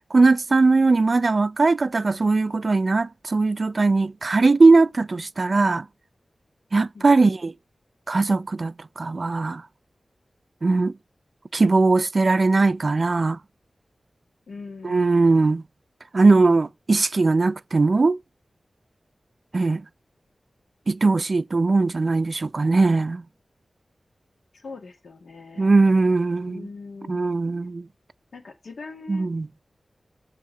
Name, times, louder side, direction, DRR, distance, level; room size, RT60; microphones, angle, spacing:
voice 1, 0.1-5.9 6.7-7.5 8.1-9.6 10.6-10.9 11.5-13.4 14.8-15.6 16.1-18.2 19.5-19.8 20.9-23.2 25.6-26.6 27.1-27.9 29.1-29.5, right 3 dB, 50° right, 0.4 m, -19 dB
voice 2, 6.9-7.3 14.5-15.3 24.5-25.8 26.5-27.4 28.3-29.3, left 4 dB, 85° left, 1.9 m, -41 dB
7.3 x 3.6 x 6.1 m
wide cardioid pair, 95°, 0 cm